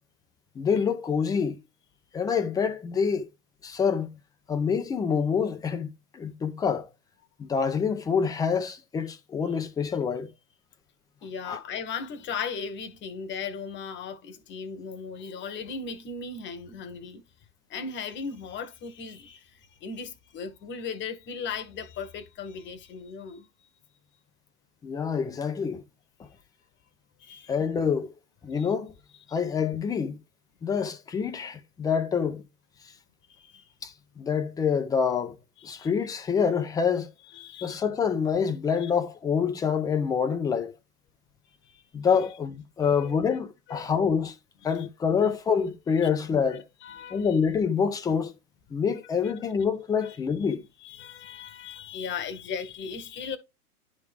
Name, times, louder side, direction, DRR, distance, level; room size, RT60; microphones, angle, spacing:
voice 1, 0.6-1.6 2.1-3.3 3.6-4.1 4.5-6.9 7.4-10.3 11.5-11.6 24.8-25.8 26.2-26.3 27.5-28.1 28.4-28.9 29.3-30.2 30.6-32.4 33.8-35.4 35.6-37.1 37.6-40.7 41.9-44.3 44.6-46.6 47.1-48.3 48.7-50.6, left 6 dB, 10° left, 0.5 m, -26 dB
voice 2, 11.2-17.2 17.7-23.5 27.2-27.5 28.6-28.7 29.3-29.4 33.3-33.7 35.6-35.9 37.3-37.8 38.8-38.9 41.6-41.8 42.1-42.3 42.8-43.1 43.7-43.9 44.7-44.9 46.8-47.4 49.2-49.4 50.0-53.4, left 5 dB, 25° left, 1.1 m, -37 dB
10.5 x 3.7 x 3.4 m
hypercardioid pair, 110°, 47 cm